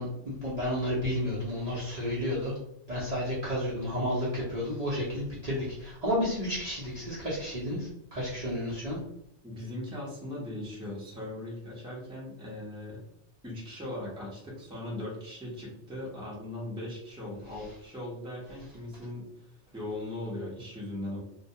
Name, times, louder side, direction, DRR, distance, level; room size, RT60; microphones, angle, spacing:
voice 1, 0.0-2.5 2.9-9.0, equal, 45° right, -9 dB, 0.6 m, -31 dB
voice 2, 9.4-13.0 13.4-21.2, left 1 dB, 5° right, -6 dB, 0.6 m, -39 dB
2.2 x 2.2 x 2.7 m, 0.77 s
omnidirectional pair, 1.2 m